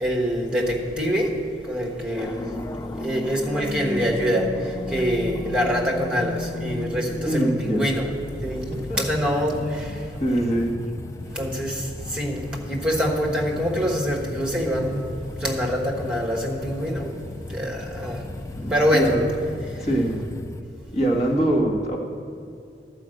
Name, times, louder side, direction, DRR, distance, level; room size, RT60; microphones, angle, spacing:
voice 1, 0.0-1.3 1.7-2.5 3.0-4.4 4.9-8.1 8.4-8.6 8.9-9.6 10.3-10.4 11.3-11.8 12.1-12.4 12.7-15.1 15.4-17.1 17.5-18.2 18.7-19.1, equal, 5° right, -2 dB, 1.3 m, -24 dB
sound 1, 2.2-20.6, left 2 dB, 15° left, 0.3 m, -35 dB
voice 2, 7.2-7.9 8.7-9.0 10.2-10.8 18.6-19.2 19.8-20.3 20.9-22.0, right 1 dB, 40° left, 0 dB, 1.4 m, -23 dB
11.5 x 5.1 x 7.7 m, 2.5 s
head